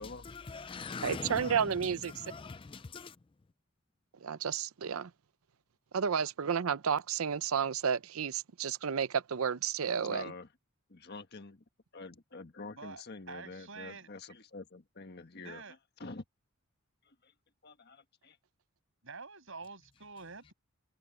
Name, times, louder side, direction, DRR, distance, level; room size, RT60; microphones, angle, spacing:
voice 1, 0.0-3.2, left 4 dB, 25° left, 0.4 m, -43 dB
voice 2, 1.0-2.1 4.2-5.1 5.9-10.2, right 7 dB, 80° right, 0.6 m, -31 dB
voice 3, 10.0-10.5 10.9-11.6 11.9-15.6 16.0-16.2 17.0-17.3 17.6-18.4, left 3 dB, 50° left, 1.5 m, -47 dB
voice 4, 13.3-14.1 15.4-15.8 19.0-20.5, right 4 dB, 65° right, 7.1 m, -47 dB
head